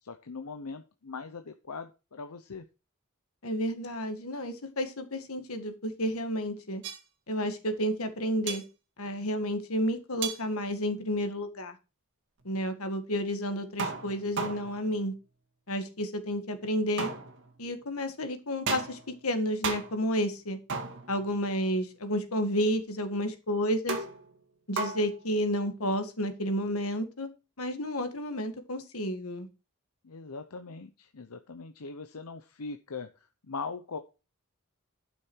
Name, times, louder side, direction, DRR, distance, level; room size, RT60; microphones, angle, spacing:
voice 1, 0.0-2.7 30.0-34.0, left 4 dB, 90° left, 8 dB, 0.8 m, -41 dB
voice 2, 3.4-6.8 7.3-8.6 9.0-11.8 12.5-15.1 15.7-17.1 17.6-20.6 21.1-24.0 24.7-27.3 27.6-29.5, equal, 70° left, 8 dB, 1.9 m, -31 dB
sound 1, 6.8-7.0 8.5-8.6 10.2-10.4 13.8-15.0 17.0-17.6 18.7-19.2 19.6-20.1 20.7-21.4 23.9-24.4 24.8-25.2, right 4 dB, 55° right, 1.9 m, -35 dB
12.0 x 6.3 x 4.6 m, 0.30 s
head